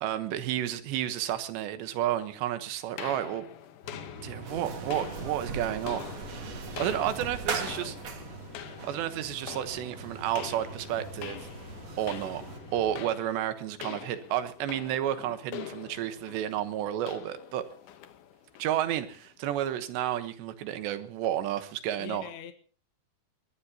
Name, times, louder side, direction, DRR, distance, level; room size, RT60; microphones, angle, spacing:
voice 1, 0.0-3.5 4.2-6.1 6.8-7.9 8.8-11.5 12.0-12.4 12.7-17.6 18.6-22.2, right 11 dB, 75° right, 3.2 m, -31 dB
sound 1, 3.0-19.3, left 11 dB, 90° left, 1.8 m, -45 dB
sound 2, 3.8-13.1, equal, 25° left, 4.5 m, -46 dB
sound 3, 4.5-12.6, right 4 dB, 50° right, 2.3 m, -40 dB
voice 2, 6.7-8.0 15.1-15.4 22.0-22.5, left 10 dB, 70° left, 3.1 m, -45 dB
21.5 x 20.0 x 2.9 m
omnidirectional pair, 5.4 m